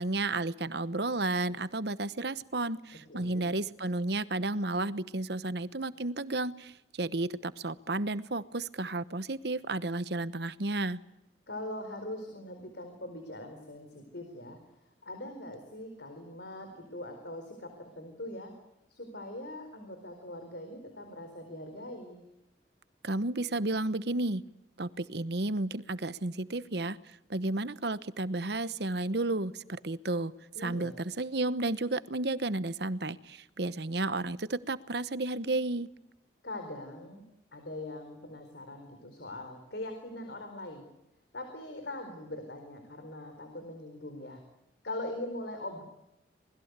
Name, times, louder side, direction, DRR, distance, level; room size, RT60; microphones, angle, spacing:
voice 1, 0.0-11.0 23.0-24.4 24.8-27.0 27.3-30.3 30.6-35.9, right 2 dB, 60° right, 15 dB, 1.0 m, -32 dB
voice 2, 3.1-3.4 11.5-14.6 15.0-18.5 18.9-22.2 30.5-30.9 36.4-37.2 37.5-40.8 41.3-44.4 44.8-45.8, left 1 dB, 60° left, 5 dB, 4.5 m, -41 dB
27.0 x 20.5 x 8.2 m, 0.87 s
head